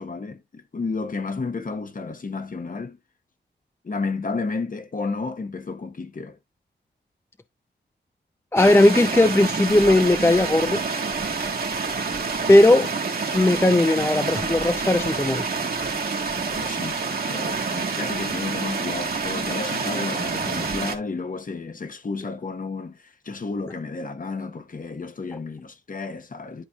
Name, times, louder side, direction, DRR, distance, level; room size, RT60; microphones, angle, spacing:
voice 1, 0.0-3.0 3.8-6.4 16.5-17.0 17.2-26.6, left 4 dB, 45° left, 1.1 m, -32 dB
voice 2, 8.5-10.8 12.5-12.9 13.3-15.4, left 1 dB, 15° left, 0.5 m, -17 dB
sound 1, 8.6-21.0, right 4 dB, 50° right, 1.5 m, -27 dB
11.0 x 4.2 x 2.3 m
cardioid pair, 65°, 20 cm